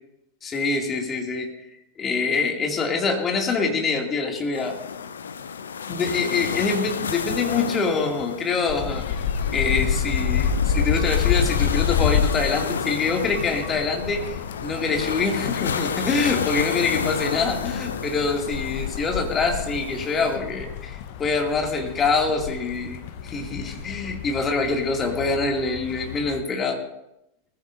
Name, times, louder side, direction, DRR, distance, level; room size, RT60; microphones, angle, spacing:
voice 1, 0.4-1.7 2.0-4.8 5.9-9.1 9.5-26.8, left 4 dB, 20° left, 2 dB, 2.4 m, -25 dB
sound 1, 4.5-20.4, left 6 dB, 70° left, 0.7 m, -31 dB
sound 2, 8.7-26.4, left 7 dB, 50° left, 0.9 m, -29 dB
19.5 x 15.5 x 2.6 m, 0.86 s
figure-of-eight pair, 90°, 0 cm